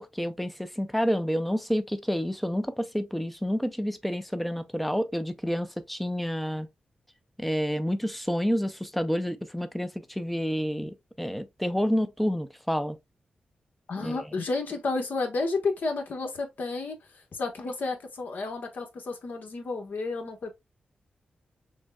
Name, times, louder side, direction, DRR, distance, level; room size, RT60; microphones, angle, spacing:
voice 1, 0.0-6.7 7.4-13.0 14.0-14.2, equal, ahead, 0.5 m, -29 dB
voice 2, 13.9-17.0 17.3-20.5, left 3 dB, 70° left, 1.2 m, -31 dB
6.3 x 2.2 x 2.3 m
wide cardioid pair, 90°, 3 cm